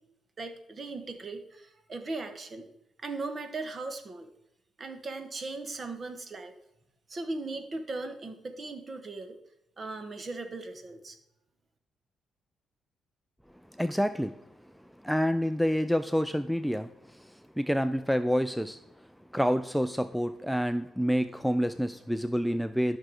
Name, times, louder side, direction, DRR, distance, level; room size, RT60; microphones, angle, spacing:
voice 1, 0.4-2.7 3.0-4.3 4.8-6.5 7.1-9.4 9.8-11.2, right 3 dB, 35° right, 8 dB, 1.4 m, -38 dB
voice 2, 13.7-14.4 15.0-23.0, equal, ahead, 11 dB, 0.4 m, -28 dB
13.0 x 6.0 x 4.9 m, 0.84 s
cardioid pair, 90°, 0 cm